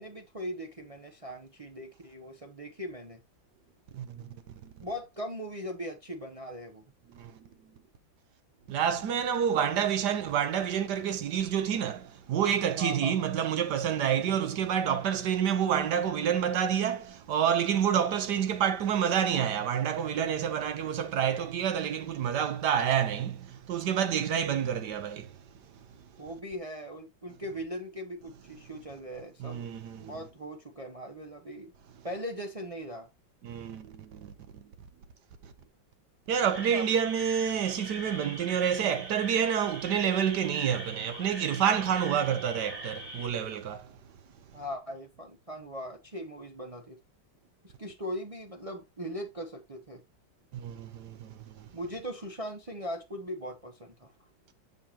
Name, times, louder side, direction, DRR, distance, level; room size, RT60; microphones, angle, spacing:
voice 1, 0.0-3.2 4.8-6.8 12.8-13.2 26.2-29.7 30.0-31.7 32.0-33.1 36.7-36.8 44.5-47.0 47.6-50.0 51.7-54.1, equal, 45° right, 0.4 m, -39 dB
voice 2, 3.9-4.4 4.6-4.7 7.1-7.5 8.7-25.4 29.4-30.1 33.4-34.3 35.4-35.5 36.3-43.9 50.5-51.7, right 8 dB, 65° right, 1.3 m, -28 dB
sound 1, 36.5-43.3, right 1 dB, 85° right, 3.8 m, -42 dB
6.7 x 6.4 x 2.8 m
omnidirectional pair, 2.1 m